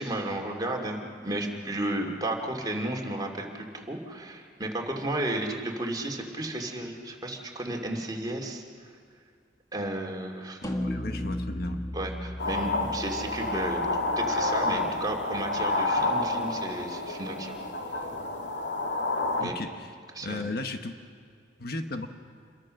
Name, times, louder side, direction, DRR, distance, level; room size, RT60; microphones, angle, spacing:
voice 1, 0.0-8.6 9.7-10.6 11.9-13.8 14.2-17.6 19.4-19.5 20.1-20.4, right 1 dB, 20° right, 1 dB, 2.7 m, -33 dB
voice 2, 10.6-11.9 19.4-19.9 20.2-20.9 21.6-22.1, left 2 dB, 60° left, 6 dB, 1.3 m, -35 dB
sound 1, 10.6-15.1, left 1 dB, 20° left, 1.7 m, -36 dB
sound 2, 12.4-19.4, left 2 dB, 90° left, 2.0 m, -29 dB
28.0 x 22.0 x 6.5 m, 2.1 s
head